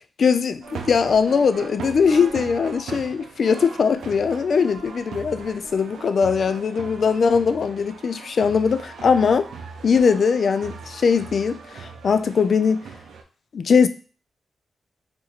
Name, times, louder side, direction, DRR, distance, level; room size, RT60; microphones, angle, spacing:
voice 1, 0.2-9.5 9.8-12.9 13.5-13.9, left 6 dB, 65° left, 0.3 m, -20 dB
sound 1, 0.6-13.2, right 5 dB, 90° right, 0.5 m, -39 dB
2.8 x 2.6 x 4.3 m
cardioid pair, 75°, 0 cm